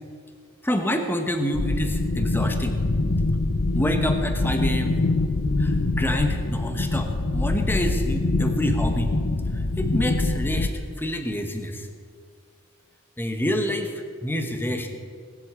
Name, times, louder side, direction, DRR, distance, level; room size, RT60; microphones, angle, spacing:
voice 1, 0.6-2.8 3.7-5.0 5.6-9.2 9.5-10.7 11.0-11.9 13.2-14.9, equal, 10° left, 5 dB, 1.1 m, -27 dB
sound 1, 1.5-10.7, left 2 dB, 60° left, 0.7 m, -24 dB
19.0 x 7.9 x 8.1 m, 2.1 s
head